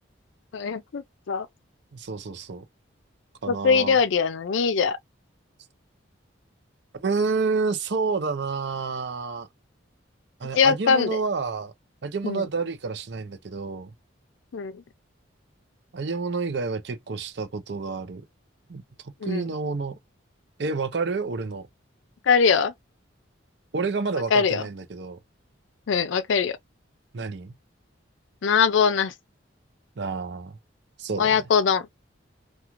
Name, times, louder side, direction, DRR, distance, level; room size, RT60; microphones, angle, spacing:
voice 1, 0.5-1.5 3.5-5.0 10.5-11.2 12.2-12.5 14.5-14.8 19.2-19.5 22.2-22.7 24.3-24.6 25.9-26.6 28.4-29.1 31.2-31.9, left 6 dB, 75° left, 0.4 m, -22 dB
voice 2, 1.9-2.6 3.4-4.0 6.9-9.5 10.4-11.7 12.0-13.9 15.9-18.2 18.7-18.8 19.2-20.0 20.6-21.7 23.7-25.2 27.1-27.5 30.0-30.6 31.0-31.4, right 4 dB, 60° right, 0.5 m, -29 dB
2.5 x 2.3 x 2.9 m
head